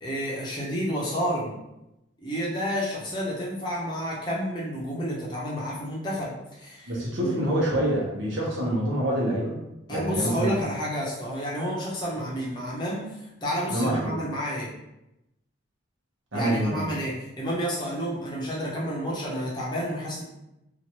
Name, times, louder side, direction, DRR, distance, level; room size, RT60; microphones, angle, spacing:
voice 1, 0.0-1.5 2.2-7.3 9.9-14.7 16.3-20.2, equal, 20° left, -5 dB, 0.7 m, -30 dB
voice 2, 6.9-9.5 9.9-10.7 13.7-14.2 16.3-16.9, right 1 dB, 75° right, -4 dB, 0.9 m, -26 dB
2.9 x 2.4 x 2.9 m, 0.90 s
head